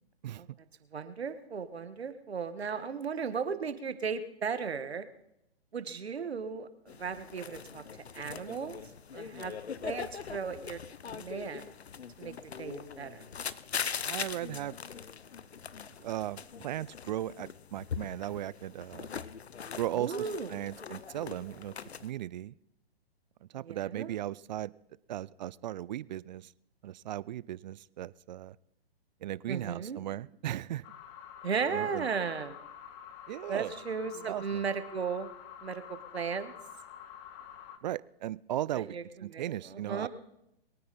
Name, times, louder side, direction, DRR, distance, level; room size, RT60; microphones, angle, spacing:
voice 1, 0.9-5.1 5.7-7.8 8.1-8.8 9.1-9.5 9.8-11.7 12.2-13.2 19.9-20.6 23.5-24.2 29.5-30.0 31.4-32.5 33.5-35.3 35.6-35.8 36.1-36.5 38.7-40.1, right 6 dB, 80° right, 11 dB, 1.7 m, -36 dB
sound 1, 6.9-22.1, left 7 dB, 85° left, 0.8 m, -41 dB
voice 2, 14.0-14.7 16.0-19.1 19.7-21.7 22.0-22.6 23.5-24.7 25.1-26.5 26.8-28.6 29.2-30.9 31.7-32.1 33.3-33.7 34.2-34.6 37.8-38.9 39.2-40.1, right 13 dB, 45° right, 21 dB, 0.5 m, -37 dB
sound 2, 30.8-37.8, left 9 dB, 30° left, 1.2 m, -48 dB
22.5 x 9.3 x 4.2 m, 0.79 s
hypercardioid pair, 130°, 31 cm